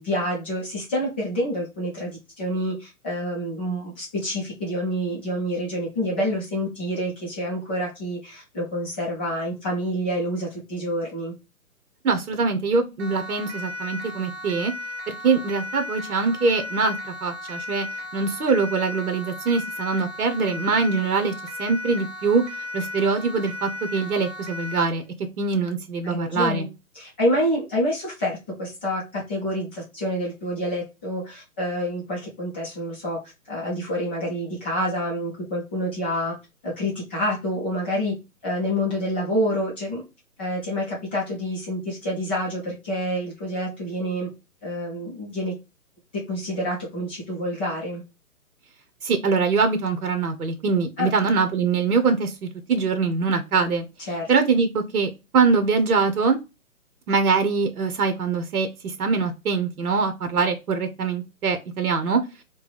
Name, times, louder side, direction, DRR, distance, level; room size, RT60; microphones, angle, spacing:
voice 1, 0.0-11.3 26.0-26.7 26.9-33.2 33.5-36.3 36.6-38.1 38.4-40.0 40.4-44.3 44.6-45.6 46.3-48.0 51.0-51.1 54.1-54.3, equal, 10° left, -7 dB, 0.5 m, -27 dB
voice 2, 12.0-14.7 15.1-17.9 18.1-21.3 21.6-22.4 22.7-25.0 25.4-26.7 49.0-53.8 54.3-56.4 57.1-62.2, right 4 dB, 70° right, 8 dB, 0.9 m, -23 dB
Siren, 13.0-25.0, left 2 dB, 45° right, 0.7 m, -35 dB
4.4 x 2.2 x 3.2 m, 0.26 s
figure-of-eight pair, 135°, 45 cm